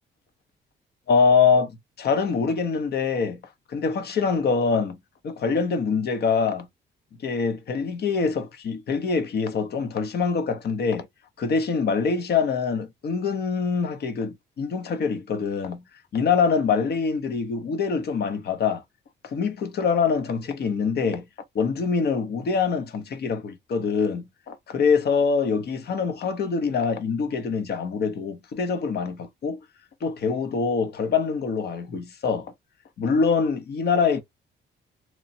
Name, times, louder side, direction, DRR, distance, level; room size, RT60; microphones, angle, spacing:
voice 1, 1.1-3.4 3.7-5.0 5.2-6.7 7.2-11.1 11.4-15.8 16.1-18.8 19.2-21.3 21.5-29.6 30.0-32.5 33.0-34.2, left 5 dB, 55° left, 0.7 m, -24 dB
3.0 x 2.2 x 2.7 m
cardioid pair, 90°, 20 cm